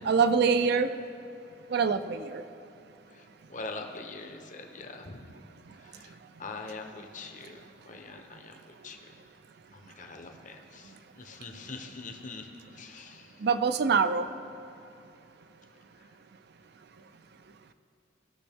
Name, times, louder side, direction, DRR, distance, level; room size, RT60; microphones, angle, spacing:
voice 1, 0.1-0.9 1.7-2.4 13.4-14.3, right 5 dB, 60° right, 10 dB, 0.5 m, -24 dB
voice 2, 3.1-5.3 5.8-9.1 9.7-13.4 16.0-16.1, left 3 dB, 45° left, 4 dB, 0.9 m, -44 dB
17.5 x 6.2 x 3.6 m, 2.7 s
head